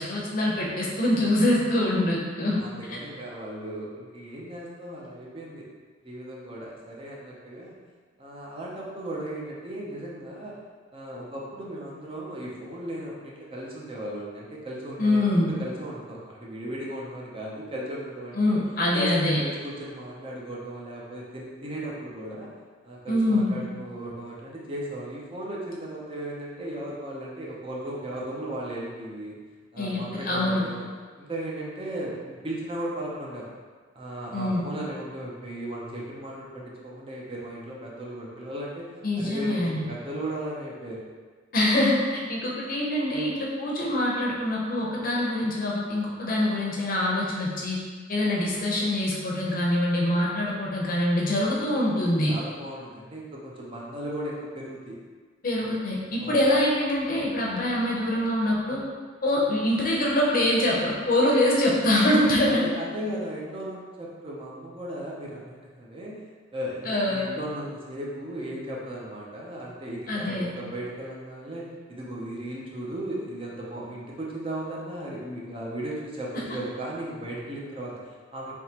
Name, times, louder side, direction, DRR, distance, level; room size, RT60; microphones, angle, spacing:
voice 1, 0.0-2.6 2.9-3.0 15.0-15.5 18.4-19.4 23.1-23.6 29.8-30.6 34.3-34.6 39.0-39.8 41.5-47.8 48.1-52.3 55.4-58.8 59.2-62.6 66.8-67.3 70.1-70.5 76.3-76.4, left 1 dB, 50° left, -3 dB, 0.7 m, -24 dB
voice 2, 2.6-5.7 6.0-7.8 8.2-10.5 10.9-15.3 15.6-18.6 18.9-22.5 22.8-29.4 29.7-30.9 31.2-33.5 33.9-38.9 39.2-41.0 52.3-55.0 56.2-56.4 62.4-66.2 66.5-78.5, right 1 dB, 30° right, -4 dB, 0.6 m, -36 dB
3.5 x 2.8 x 2.9 m, 1.5 s
head